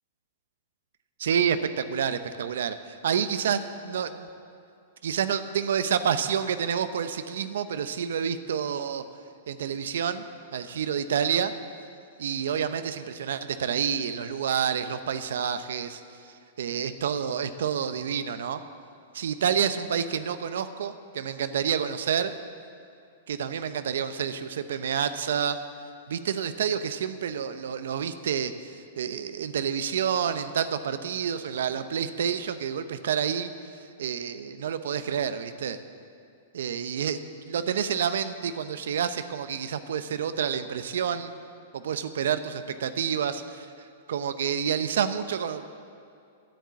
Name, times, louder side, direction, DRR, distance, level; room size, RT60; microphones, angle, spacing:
voice 1, 1.2-4.3 5.0-9.0 9.5-10.2 10.5-11.5 12.2-16.0 16.6-18.6 19.1-22.3 23.3-25.6 26.1-33.5 34.0-35.8 36.5-37.2 37.5-41.4 41.7-43.7 44.1-45.7, right 8 dB, 80° right, 11 dB, 0.7 m, -28 dB
10.5 x 10.0 x 8.2 m, 2.4 s
hypercardioid pair, 140°, 0 cm